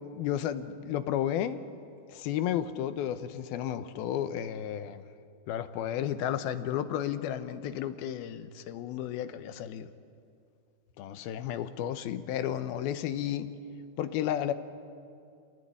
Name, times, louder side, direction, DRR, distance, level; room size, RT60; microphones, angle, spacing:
voice 1, 0.1-1.6 2.1-5.0 5.5-9.9 11.0-13.5 14.0-14.5, left 10 dB, 80° left, 11 dB, 2.7 m, -32 dB
27.0 x 19.0 x 9.9 m, 2.4 s
omnidirectional pair, 4.5 m